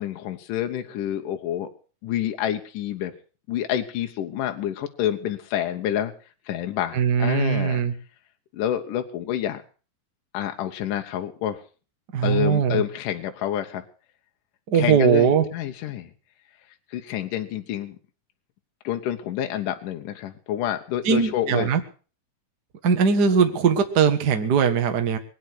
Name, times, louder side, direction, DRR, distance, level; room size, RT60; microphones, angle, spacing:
voice 1, 0.0-1.7 2.0-3.1 3.5-6.1 6.5-7.8 8.5-9.6 10.3-11.6 12.2-13.8 14.7-16.1 16.9-18.0 18.8-21.7, left 11 dB, 75° left, 6 dB, 2.5 m, -28 dB
voice 2, 6.9-7.9 12.1-12.8 14.7-15.4 21.0-21.8 22.8-25.2, right 6 dB, 45° right, 7 dB, 1.3 m, -20 dB
21.5 x 9.4 x 6.3 m, 0.39 s
omnidirectional pair, 3.9 m